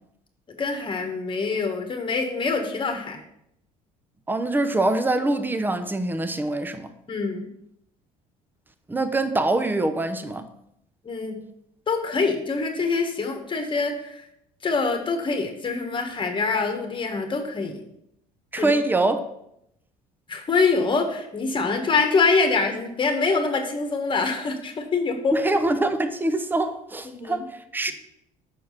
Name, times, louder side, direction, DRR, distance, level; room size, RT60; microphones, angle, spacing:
voice 1, 0.6-3.2 7.1-7.5 11.0-11.4 11.9-14.2 14.6-17.8 18.5-18.8 20.3-25.3 27.1-27.4, left 4 dB, 30° left, 1.5 m, -25 dB
voice 2, 4.3-6.9 8.9-10.5 18.5-19.3 25.3-27.9, right 2 dB, 10° right, 0.7 m, -24 dB
6.3 x 4.6 x 5.6 m
supercardioid pair, 90°, 17 cm